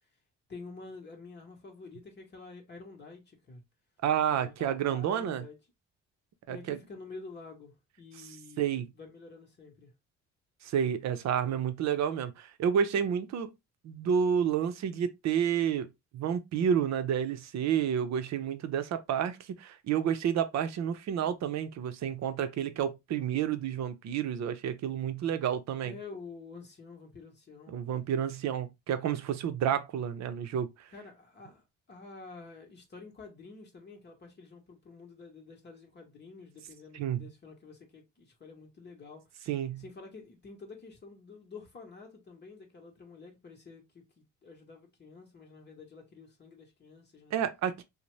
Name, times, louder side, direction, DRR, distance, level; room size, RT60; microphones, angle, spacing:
voice 1, 0.5-3.6 4.3-5.6 6.5-9.9 25.8-27.7 30.9-39.4 39.8-47.3, left 4 dB, 35° left, 0.9 m, -49 dB
voice 2, 4.0-5.4 6.5-6.8 8.6-8.9 10.6-13.5 13.8-25.9 27.7-30.7 36.9-37.3 39.5-39.8 47.3-47.8, right 8 dB, 65° right, 0.6 m, -30 dB
2.6 x 2.1 x 3.1 m
cardioid pair, 90°, 30 cm